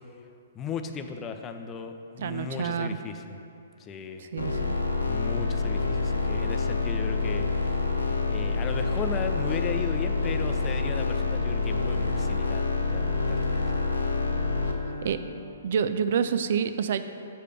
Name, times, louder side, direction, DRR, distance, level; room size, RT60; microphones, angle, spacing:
voice 1, 0.5-3.4 3.8-4.3 5.1-13.6, left 6 dB, 20° left, 7 dB, 0.5 m, -36 dB
voice 2, 2.2-3.0 4.2-4.8 15.0-15.2 15.6-17.0, right 7 dB, 55° right, 10 dB, 0.4 m, -28 dB
sound 1, 4.4-14.7, left 4 dB, 85° left, 0.9 m, -27 dB
Bowed string instrument, 11.7-16.3, equal, 90° right, 1.4 m, -42 dB
7.2 x 4.9 x 6.7 m, 2.7 s
figure-of-eight pair, 120°, 0 cm